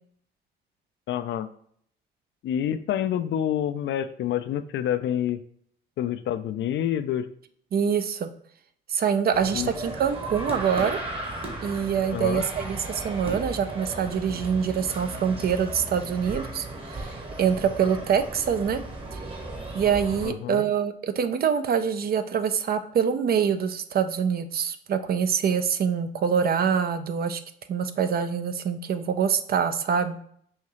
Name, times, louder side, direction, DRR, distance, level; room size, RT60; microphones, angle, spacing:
voice 1, 1.1-1.5 2.4-5.4 6.0-7.3 9.5-9.7 12.1-12.4 20.2-20.6, left 10 dB, 65° left, 11 dB, 0.4 m, -27 dB
voice 2, 7.7-8.3 8.9-11.0 11.6-16.7 16.9-17.1 17.4-18.8 19.7-27.4 27.7-30.2, right 7 dB, 50° right, 10 dB, 0.5 m, -25 dB
sound 1, 9.3-20.3, right 2 dB, 30° right, 1.2 m, -36 dB
5.7 x 2.8 x 3.0 m, 0.64 s
cardioid pair, 90°, 20 cm